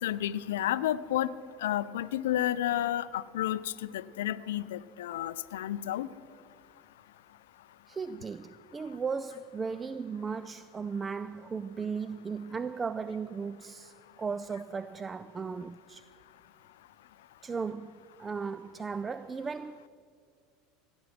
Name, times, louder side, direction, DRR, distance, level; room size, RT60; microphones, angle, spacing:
voice 1, 0.0-1.3 1.6-6.1, left 12 dB, 70° left, 0.4 m, -31 dB
voice 2, 7.9-16.1 17.4-19.9, right 5 dB, 20° right, 0.3 m, -36 dB
16.0 x 9.6 x 5.8 m
figure-of-eight pair, 75°, 0 cm